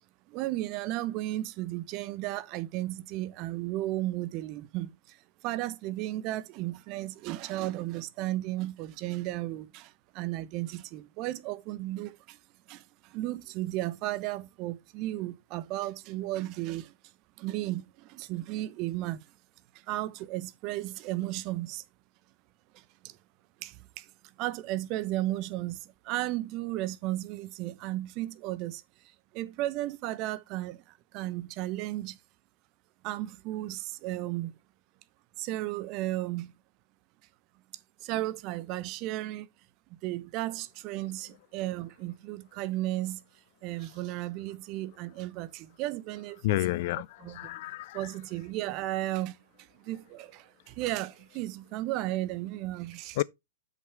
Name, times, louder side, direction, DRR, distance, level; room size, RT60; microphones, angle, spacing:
voice 1, 0.3-5.2 5.4-12.4 12.7-16.9 17.4-19.2 19.9-21.8 22.7-23.2 23.6-24.1 24.4-28.8 29.3-30.8 31.1-32.2 33.0-34.5 35.4-36.5 38.0-39.5 40.0-43.2 43.6-46.6 47.2-47.4 47.9-49.4 49.8-53.2, right 16 dB, 40° right, 0.8 m, -34 dB
voice 2, 46.4-48.1 53.2-53.3, left 18 dB, 50° left, 0.3 m, -30 dB
7.7 x 6.4 x 3.4 m
figure-of-eight pair, 105°, 0 cm